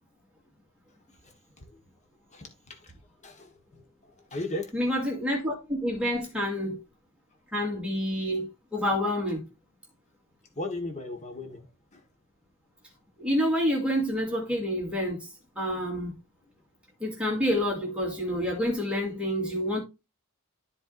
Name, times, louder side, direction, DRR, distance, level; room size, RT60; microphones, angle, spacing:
voice 1, 2.3-2.9 3.2-4.7 10.6-12.0, left 2 dB, 30° left, 1.3 m, -37 dB
voice 2, 4.7-6.8 7.5-9.5 13.2-15.3 15.6-16.1 17.0-19.8, equal, 5° right, 2.4 m, -28 dB
13.0 x 4.6 x 2.5 m
head